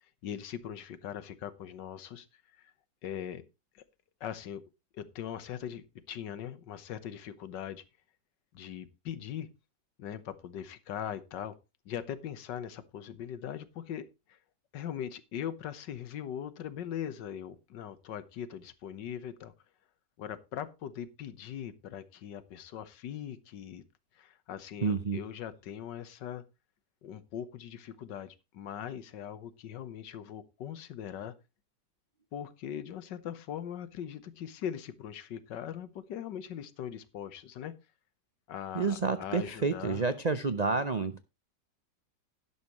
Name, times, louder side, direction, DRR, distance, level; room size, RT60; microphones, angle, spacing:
voice 1, 0.2-2.7 3.0-3.4 3.7-3.8 4.2-4.6 4.9-7.8 8.5-9.5 10.0-11.5 11.8-14.4 14.7-19.5 20.2-23.8 24.1-26.4 27.0-31.3 32.3-37.8 38.5-40.0, left 9 dB, 90° left, 1.7 m, -40 dB
voice 2, 24.8-25.2 38.7-41.2, right 4 dB, 85° right, 0.3 m, -29 dB
11.5 x 11.5 x 3.0 m
omnidirectional pair, 1.9 m